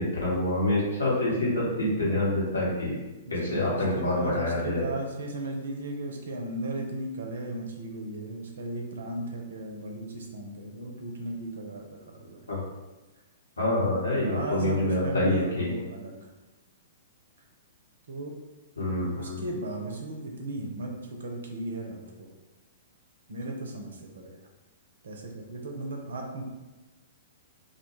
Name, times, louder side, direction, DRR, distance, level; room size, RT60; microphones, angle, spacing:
voice 1, 0.0-2.9 3.3-4.8 12.5-12.6 13.6-15.7 18.8-19.4, left 1 dB, 70° left, -6 dB, 1.0 m, -26 dB
voice 2, 3.3-12.4 14.1-16.2 18.1-18.3 19.1-22.3 23.3-24.4 25.0-26.4, right 2 dB, 60° right, 1 dB, 0.5 m, -36 dB
2.2 x 2.1 x 3.0 m, 1.1 s
figure-of-eight pair, 110°, 0 cm